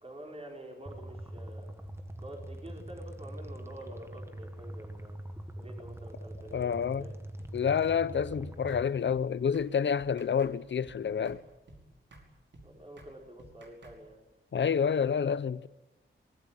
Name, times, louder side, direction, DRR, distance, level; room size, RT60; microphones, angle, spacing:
voice 1, 0.0-1.7 2.2-5.2 5.6-7.1 12.6-14.2, equal, 30° right, 5.0 m, -47 dB
sound 1, 0.9-8.9, right 1 dB, 10° right, 1.4 m, -43 dB
voice 2, 6.5-7.0 7.5-11.4 14.5-15.7, left 7 dB, 60° left, 0.7 m, -28 dB
sound 2, 7.4-7.5 7.8-8.0 8.2-8.4 8.7-8.8 9.1-9.2 9.5-9.7 10.0-10.5 10.8-11.0 11.3-11.4 11.7-11.8 12.1-12.3 12.5-12.7 13.0-13.1 13.4-14.0, right 2 dB, 60° right, 5.0 m, -53 dB
24.0 x 20.5 x 8.9 m
wide cardioid pair, 145°, 21 cm